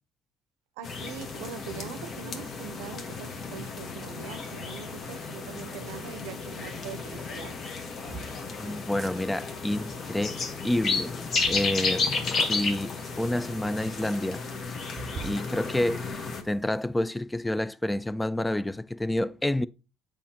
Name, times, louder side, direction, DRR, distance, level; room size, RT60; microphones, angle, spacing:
sound 1, 0.8-16.4, left 4 dB, 45° left, 1.1 m, -33 dB
voice 1, 0.8-7.5 12.3-12.5, right 8 dB, 90° right, 0.6 m, -42 dB
sound 2, 2.1-12.8, left 4 dB, 30° left, 0.8 m, -45 dB
sound 3, 6.6-6.7 7.6-8.3 8.9-9.2 10.8-11.7 12.4-12.6 13.2-13.3 13.5-13.6 13.9-14.0 14.9-15.4 15.9-16.8, right 5 dB, 40° right, 0.6 m, -43 dB
voice 2, 8.5-10.4 10.6-11.2 11.5-14.4 15.2-19.7, left 1 dB, 10° left, 0.3 m, -29 dB
7.2 x 5.0 x 2.8 m
supercardioid pair, 95°, 0 cm